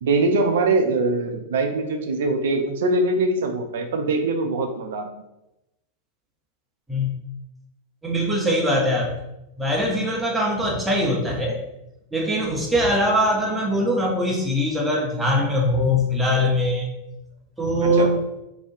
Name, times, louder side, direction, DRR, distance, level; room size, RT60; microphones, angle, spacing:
voice 1, 0.0-5.1 17.8-18.1, right 2 dB, 60° right, 5 dB, 0.3 m, -22 dB
voice 2, 8.0-9.1 9.6-11.6 12.1-16.9 17.6-18.2, equal, 10° right, -2 dB, 0.5 m, -22 dB
2.4 x 2.1 x 2.6 m, 0.92 s
figure-of-eight pair, 90°, 0 cm